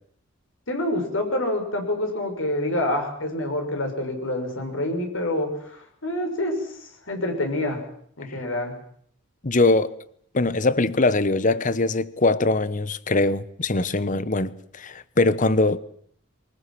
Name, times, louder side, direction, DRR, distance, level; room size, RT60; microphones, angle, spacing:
voice 1, 0.7-7.8 8.2-8.7, left 1 dB, 75° left, 6.4 m, -27 dB
voice 2, 9.4-9.9 10.3-15.8, left 2 dB, 40° left, 1.0 m, -22 dB
23.5 x 20.0 x 7.7 m
head